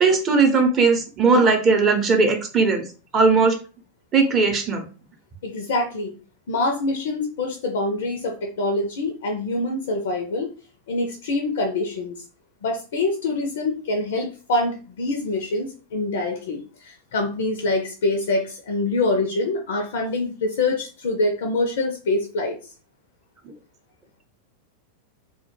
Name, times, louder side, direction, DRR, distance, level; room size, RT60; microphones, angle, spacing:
voice 1, 0.0-2.8 3.1-3.6 4.1-4.8, right 4 dB, 30° right, 4 dB, 0.6 m, -18 dB
voice 2, 5.4-6.1 6.5-10.5 10.9-12.2 12.6-22.5, left 2 dB, 60° left, 3 dB, 0.4 m, -25 dB
2.1 x 2.1 x 3.0 m, 0.36 s
figure-of-eight pair, 90°, 0 cm